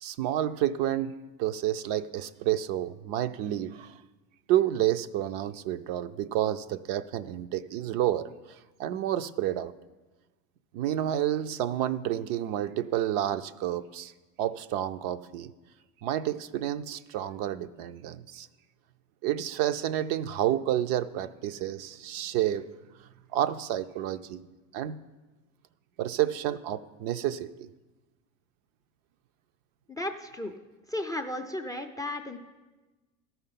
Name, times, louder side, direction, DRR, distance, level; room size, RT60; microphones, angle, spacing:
voice 1, 0.0-4.0 4.5-9.7 10.7-14.1 14.4-15.5 16.0-18.5 19.2-22.7 23.0-24.4 24.7-25.0 26.0-27.7, right 12 dB, 55° right, 11 dB, 0.5 m, -30 dB
voice 2, 29.9-30.5 30.9-32.4, left 1 dB, 10° left, 7 dB, 0.4 m, -34 dB
13.5 x 5.6 x 5.7 m, 1.2 s
supercardioid pair, 100°, 41 cm